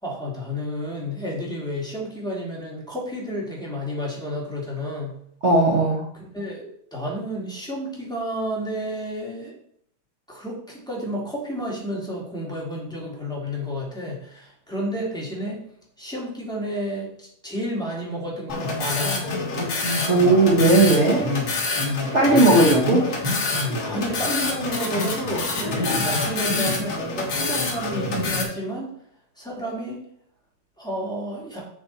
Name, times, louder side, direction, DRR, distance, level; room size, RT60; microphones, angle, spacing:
voice 1, 0.0-5.2 6.1-9.6 10.3-15.6 16.0-19.2 21.2-21.5 23.8-28.9 29.4-30.0 30.8-31.6, equal, ahead, -5 dB, 2.2 m, -31 dB
voice 2, 5.4-6.0 20.1-21.3 22.1-23.1, right 2 dB, 70° right, -1 dB, 0.6 m, -17 dB
sound 1, 18.5-28.4, left 3 dB, 35° left, 1.7 m, -26 dB
7.7 x 6.3 x 4.2 m, 0.68 s
omnidirectional pair, 3.5 m